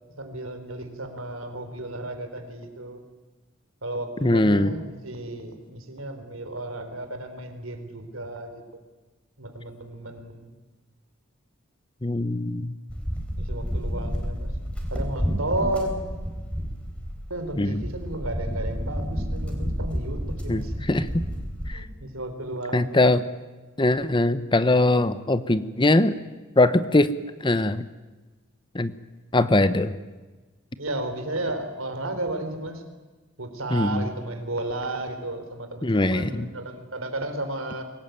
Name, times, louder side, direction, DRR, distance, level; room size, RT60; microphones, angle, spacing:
voice 1, 0.2-3.0 3.8-8.6 9.4-10.5 13.4-14.5 14.9-16.2 17.3-20.9 21.7-23.1 30.8-32.8 33.4-37.8, right 1 dB, 80° right, 7 dB, 3.6 m, -33 dB
voice 2, 4.2-4.7 12.0-12.7 17.6-17.8 20.5-21.2 21.7-21.9 22.7-23.2 23.8-26.1 26.6-27.1 27.4-27.9 28.7-28.9 29.3-29.9 33.7-34.1 35.8-36.5, left 2 dB, 25° left, 14 dB, 0.8 m, -21 dB
sound 1, 12.9-21.7, equal, 5° left, 3.8 m, -30 dB
24.0 x 20.0 x 9.2 m, 1.2 s
head